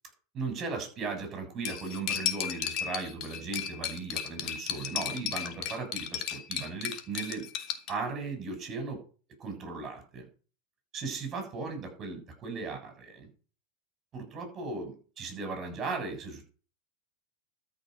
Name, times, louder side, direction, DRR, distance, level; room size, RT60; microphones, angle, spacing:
voice 1, 0.3-7.5 7.9-9.0 9.4-10.3 10.9-13.3 14.1-16.5, right 4 dB, 25° right, 5 dB, 7.3 m, -37 dB
Cutlery silverware, 1.6-7.9, left 9 dB, 45° left, 1.9 m, -34 dB
13.0 x 5.8 x 8.0 m, 0.38 s
supercardioid pair, 145°, 0 cm